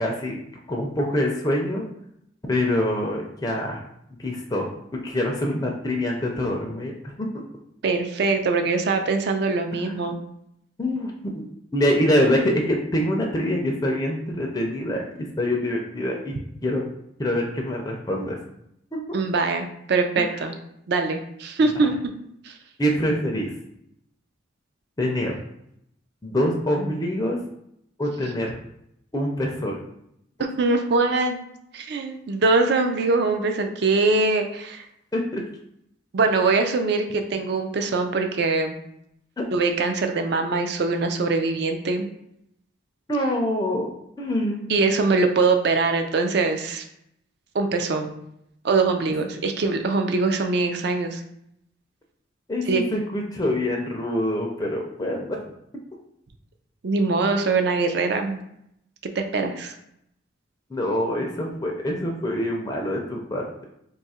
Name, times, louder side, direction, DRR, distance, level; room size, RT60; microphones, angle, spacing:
voice 1, 0.0-1.8 2.5-3.8 4.2-4.7 4.9-7.3 9.7-9.9 10.8-11.1 11.7-15.0 15.4-16.3 16.6-16.8 17.2-18.4 18.9-19.0 20.2-20.4 22.8-23.5 25.0-25.4 26.2-27.4 28.0-28.5 29.1-29.8 35.1-35.4 43.1-43.9 44.2-44.7 52.5-55.4 60.7-63.7, left 1 dB, 20° left, 0 dB, 0.4 m, -25 dB
voice 2, 7.8-10.2 19.1-20.5 20.9-21.9 22.4-22.5 30.6-31.4 31.7-34.9 36.1-38.8 39.5-42.1 44.7-46.8 47.5-48.1 48.6-51.2 52.7-52.8 56.8-58.4 59.2-59.7, right 3 dB, 60° right, 6 dB, 0.4 m, -22 dB
2.8 x 2.4 x 4.1 m, 0.75 s
head